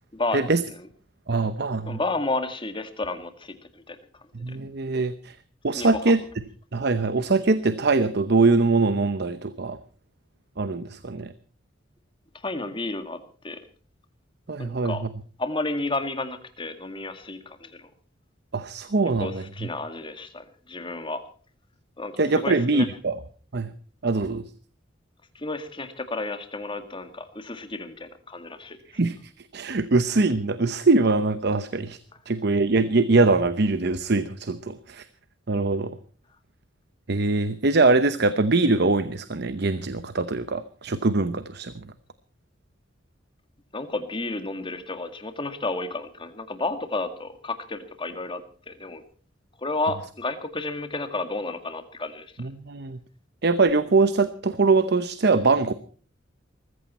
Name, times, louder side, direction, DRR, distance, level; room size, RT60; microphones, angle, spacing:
voice 1, 0.1-0.5 1.9-4.0 4.5-4.6 5.8-6.2 12.4-13.2 13.4-13.6 14.6-15.0 15.4-17.9 19.2-21.2 22.0-22.9 25.4-28.8 43.7-48.4 48.7-49.0 49.6-52.3, left 2 dB, 25° left, 8 dB, 2.0 m, -31 dB
voice 2, 1.3-2.0 4.3-5.3 5.6-6.2 6.7-9.8 10.6-11.3 14.5-15.1 18.5-19.4 22.2-23.2 23.5-23.7 24.0-24.4 28.9-29.2 29.5-32.0 32.3-35.0 35.5-35.9 37.1-41.7 52.4-53.0 53.4-55.7, right 3 dB, 60° right, 13 dB, 0.9 m, -22 dB
21.0 x 15.0 x 4.3 m, 0.41 s
head